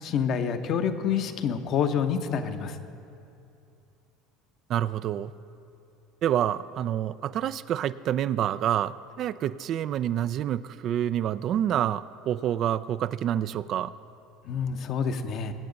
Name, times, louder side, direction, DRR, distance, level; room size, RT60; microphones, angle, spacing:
voice 1, 0.0-2.8 14.4-15.5, left 7 dB, 50° left, 7 dB, 0.9 m, -27 dB
voice 2, 4.7-5.3 6.2-13.9, right 10 dB, 50° right, 15 dB, 0.3 m, -27 dB
22.5 x 8.4 x 4.0 m, 2.6 s
hypercardioid pair, 75°, 0 cm